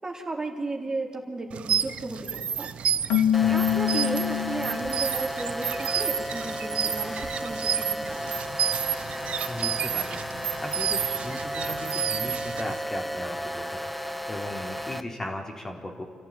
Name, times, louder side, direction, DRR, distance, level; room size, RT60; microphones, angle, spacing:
voice 1, 0.0-2.7 3.5-8.3, right 2 dB, 30° right, 1 dB, 3.7 m, -34 dB
sound 1, 1.5-12.8, right 8 dB, 55° right, 0.7 m, -30 dB
Keyboard (musical), 3.1-5.1, left 11 dB, 70° left, 1.2 m, -25 dB
sound 2, 3.3-15.0, equal, 5° left, 1.1 m, -34 dB
voice 2, 3.4-3.8 9.5-16.0, left 1 dB, 25° left, 1 dB, 3.8 m, -37 dB
29.0 x 14.5 x 8.9 m, 2.1 s
figure-of-eight pair, 40°, 2 cm